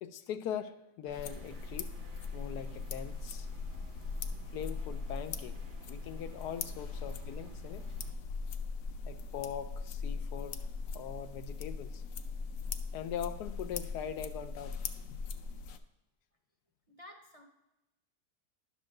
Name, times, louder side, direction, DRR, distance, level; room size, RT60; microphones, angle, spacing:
voice 1, 0.0-1.9 2.3-3.5 4.5-5.6 5.9-7.8 9.1-10.6 10.9-12.0 12.9-14.8, left 9 dB, 85° left, 9 dB, 1.2 m, -41 dB
sound 1, 1.0-8.1, right 5 dB, 80° right, 1.3 m, -54 dB
sound 2, 1.1-15.8, left 4 dB, 70° left, 0.9 m, -40 dB
voice 2, 16.9-17.4, left 1 dB, 35° right, 2 dB, 0.5 m, -52 dB
11.0 x 3.7 x 6.5 m, 0.97 s
omnidirectional pair, 1.7 m